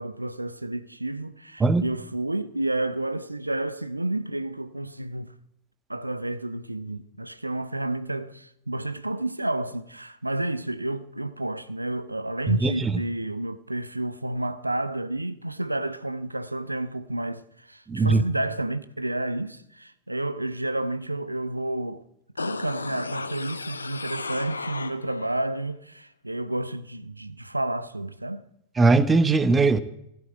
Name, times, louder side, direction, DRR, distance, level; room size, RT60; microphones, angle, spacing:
voice 1, 0.0-5.3 5.9-22.0 22.4-28.4, right 1 dB, 85° right, 0.6 m, -30 dB
voice 2, 12.5-12.9 17.9-18.2 28.8-29.8, right 3 dB, 15° right, 0.9 m, -20 dB
sound 1, 22.4-25.4 25.7-25.8, left 4 dB, 80° left, 0.8 m, -34 dB
15.5 x 8.2 x 8.9 m
figure-of-eight pair, 90°, 0 cm